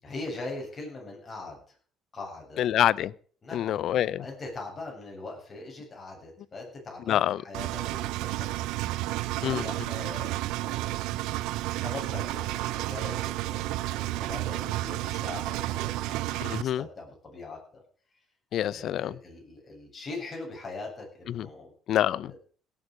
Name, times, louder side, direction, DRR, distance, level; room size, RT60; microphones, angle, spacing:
voice 1, 0.0-1.6 2.1-2.7 3.4-3.8 4.2-8.7 9.0-9.1 9.5-11.0 11.8-17.8 18.7-21.7 22.2-22.4, left 3 dB, 25° left, 0 dB, 7.7 m, -41 dB
voice 2, 2.6-3.1 3.5-4.2 7.1-7.4 9.4-9.6 16.4-16.9 18.5-19.2 21.3-21.5 21.9-22.3, left 11 dB, 60° left, 22 dB, 0.6 m, -26 dB
Engine, 7.5-16.6, right 17 dB, 85° right, 0.6 m, -31 dB
17.5 x 8.6 x 6.5 m, 0.43 s
cardioid pair, 115°, 0 cm